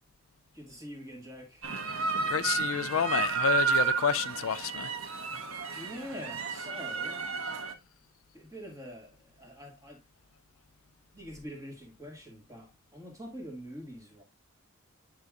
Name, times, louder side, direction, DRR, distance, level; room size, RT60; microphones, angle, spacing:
voice 1, 0.5-1.7 5.7-7.3 8.3-10.0 11.1-14.2, equal, 15° right, 2.1 m, -45 dB
sound 1, 1.6-7.7, right 6 dB, 80° right, 1.2 m, -31 dB
voice 2, 2.3-4.9, left 8 dB, 75° left, 0.4 m, -29 dB
9.6 x 4.8 x 2.5 m
head